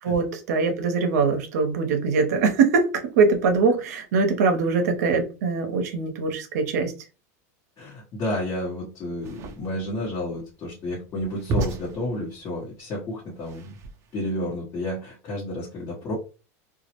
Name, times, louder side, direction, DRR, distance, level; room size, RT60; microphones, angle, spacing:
voice 1, 0.0-6.9, right 4 dB, 80° right, 0.6 m, -22 dB
voice 2, 7.8-13.8 14.1-16.1, left 1 dB, 35° left, 0.9 m, -31 dB
sound 1, 9.1-14.3, right 3 dB, 35° right, 0.4 m, -34 dB
2.2 x 2.0 x 2.8 m
supercardioid pair, 130°, 9 cm